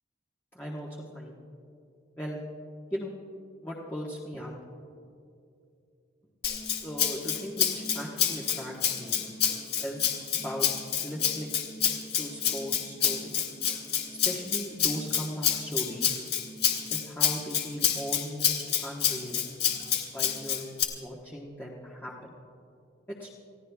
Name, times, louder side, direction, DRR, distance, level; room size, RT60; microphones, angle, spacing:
voice 1, 0.5-1.4 2.2-2.4 2.9-3.1 3.6-4.5 6.8-9.2 9.8-10.7 11.0-11.5 12.2-13.4 14.2-16.2 16.9-19.4 20.1-22.1 23.2-23.3, equal, 10° left, -5 dB, 1.3 m, -38 dB
Rattle (instrument), 6.4-20.8, left 8 dB, 55° left, 1.8 m, -28 dB
29.5 x 16.0 x 2.3 m, 2.6 s
head